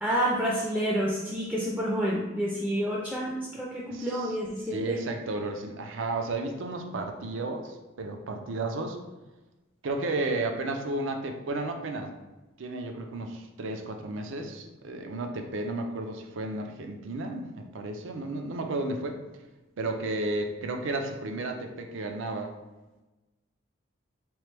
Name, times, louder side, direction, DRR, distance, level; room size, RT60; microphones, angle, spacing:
voice 1, 0.0-5.0, equal, 5° right, -5 dB, 0.4 m, -29 dB
voice 2, 3.9-4.4 4.7-9.0 9.8-12.1 12.6-19.2 19.8-22.6, right 2 dB, 65° right, 4 dB, 0.5 m, -33 dB
3.7 x 3.1 x 3.3 m, 1.1 s
head